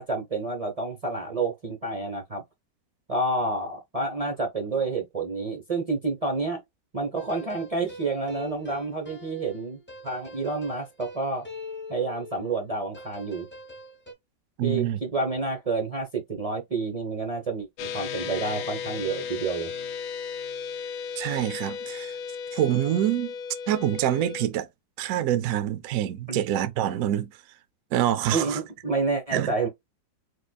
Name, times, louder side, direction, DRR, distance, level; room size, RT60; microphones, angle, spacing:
voice 1, 0.0-2.4 3.1-6.6 6.9-11.5 11.9-13.5 14.6-19.7 26.3-26.5 28.3-29.7, right 3 dB, 45° right, 0.4 m, -29 dB
sound 1, 7.2-12.7 12.9-14.1, left 2 dB, 15° left, 0.3 m, -43 dB
voice 2, 14.6-15.0 21.2-22.1 22.5-23.3 23.7-24.7 25.0-27.3 27.9-28.6 29.3-29.5, right 12 dB, 70° right, 0.8 m, -26 dB
sound 2, 17.8-24.5, left 6 dB, 70° left, 0.8 m, -35 dB
4.9 x 2.2 x 2.3 m
omnidirectional pair, 2.0 m